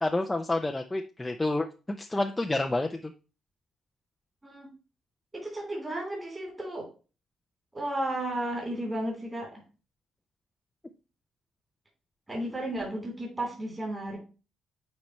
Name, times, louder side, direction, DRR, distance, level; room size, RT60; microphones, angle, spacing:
voice 1, 0.0-3.1, left 2 dB, 15° left, 4 dB, 0.6 m, -29 dB
voice 2, 5.3-6.9 7.7-9.6 12.3-14.2, right 1 dB, 20° right, -2 dB, 3.5 m, -33 dB
8.5 x 4.5 x 3.1 m, 0.34 s
cardioid pair, 90°, 0 cm